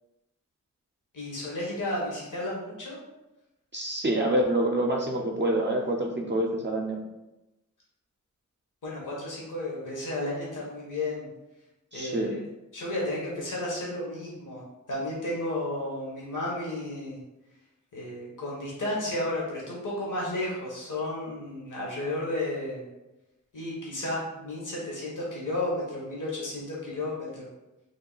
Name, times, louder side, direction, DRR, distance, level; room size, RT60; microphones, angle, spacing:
voice 1, 1.1-3.0 8.8-11.3 11.9-12.4 12.7-14.6 14.9-17.2 17.9-22.9 23.5-27.5, left 1 dB, 75° left, -5 dB, 1.1 m, -33 dB
voice 2, 3.7-7.0 11.9-12.3, right 1 dB, 35° right, -1 dB, 0.4 m, -26 dB
3.5 x 2.2 x 3.8 m, 0.99 s
wide cardioid pair, 75°, 31 cm